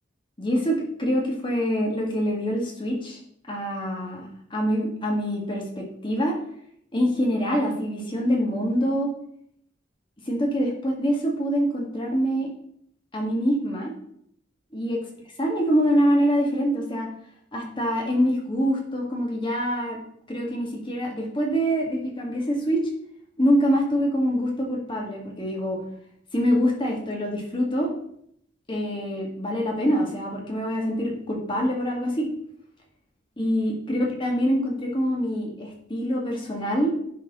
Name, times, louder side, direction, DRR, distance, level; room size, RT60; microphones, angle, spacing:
voice 1, 0.4-3.2 3.5-6.3 6.9-9.1 10.3-12.5 13.1-13.9 14.7-15.0 15.4-17.1 17.5-20.0 20.3-22.8 23.4-25.8 26.3-27.9 28.7-32.3 33.4-36.9, equal, 30° left, -1 dB, 1.8 m, -25 dB
10.5 x 4.3 x 3.8 m, 0.69 s
head